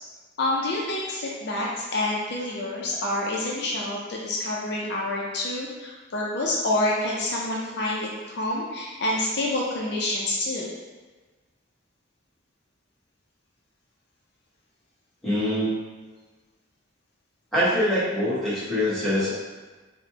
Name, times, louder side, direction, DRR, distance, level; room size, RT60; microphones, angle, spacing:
voice 1, 0.4-10.7, left 1 dB, 55° left, -3 dB, 0.5 m, -27 dB
voice 2, 15.2-15.7 17.5-19.3, left 1 dB, ahead, -12 dB, 1.2 m, -24 dB
4.2 x 2.1 x 3.0 m, 1.3 s
head